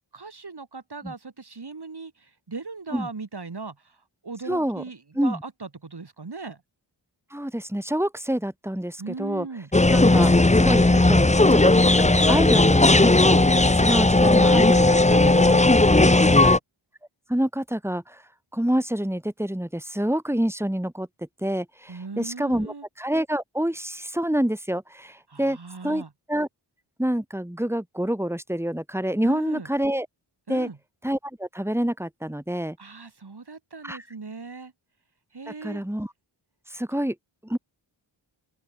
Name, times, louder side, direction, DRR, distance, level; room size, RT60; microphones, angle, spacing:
voice 1, 0.1-6.6 9.0-9.7 15.1-16.6 21.9-22.8 25.3-26.1 29.2-29.7 30.5-30.8 32.8-34.7 35.3-35.8, right 4 dB, 50° right, 3.8 m, -38 dB
voice 2, 4.5-4.8 5.1-5.4 7.3-9.5 9.9-10.3 10.6-13.4 13.7-15.6 16.4-16.6 17.3-18.2 18.5-21.1 21.4-25.6 25.8-26.0 26.3-26.5 27.0-30.1 30.5-30.7 31.0-32.8 33.8-34.0 35.6-36.1 36.7-37.1 37.4-37.6, right 1 dB, 5° right, 4.7 m, -27 dB
sound 1, 9.7-16.6, left 2 dB, 15° left, 1.0 m, -16 dB
open air
wide cardioid pair, 80°, 48 cm